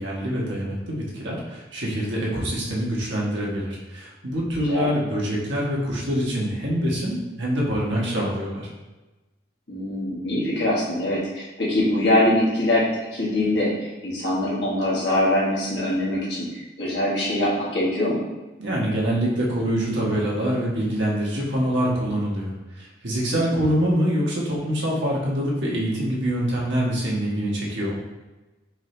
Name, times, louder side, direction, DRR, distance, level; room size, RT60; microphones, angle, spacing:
voice 1, 0.0-8.7 18.6-27.9, equal, 75° right, -4 dB, 1.2 m, -25 dB
voice 2, 4.6-4.9 9.7-18.2 23.3-23.6, left 1 dB, 65° left, -7 dB, 1.5 m, -23 dB
4.7 x 2.9 x 3.2 m, 1.1 s
head